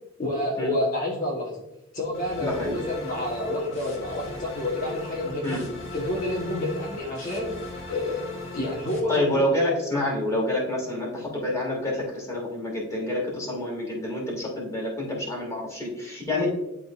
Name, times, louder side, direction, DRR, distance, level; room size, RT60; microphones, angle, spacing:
voice 1, 0.2-1.6 1.9-5.6 5.9-7.6 7.9-9.3, left 1 dB, 35° left, -5 dB, 1.2 m, -29 dB
sound 1, 2.1-9.0, left 2 dB, 60° left, 1.4 m, -39 dB
voice 2, 2.4-2.8 5.4-5.6 9.1-16.5, left 1 dB, 15° left, -3 dB, 2.0 m, -27 dB
11.0 x 3.8 x 2.4 m, 0.91 s
head